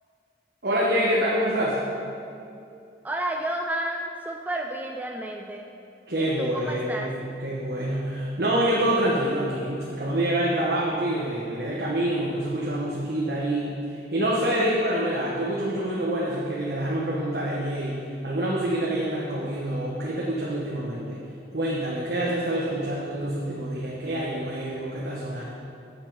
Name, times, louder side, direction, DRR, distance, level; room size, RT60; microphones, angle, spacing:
voice 1, 0.6-1.8 6.1-18.0 18.2-21.2 21.5-25.4, right 1 dB, 65° right, -5 dB, 1.1 m, -26 dB
voice 2, 3.0-5.7 6.2-7.1 14.6-14.7, right 1 dB, 10° right, 1 dB, 0.3 m, -31 dB
7.7 x 7.2 x 5.5 m, 2.6 s
head